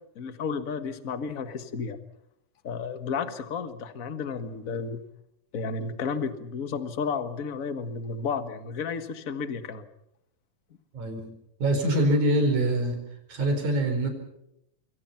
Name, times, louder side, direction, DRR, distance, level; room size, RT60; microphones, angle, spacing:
voice 1, 0.1-2.0 2.6-5.0 5.5-9.8, left 5 dB, 35° left, 9 dB, 1.4 m, -32 dB
voice 2, 11.6-13.0 13.3-14.1, right 1 dB, 70° right, 5 dB, 6.2 m, -24 dB
27.0 x 23.0 x 5.8 m, 0.79 s
omnidirectional pair, 3.5 m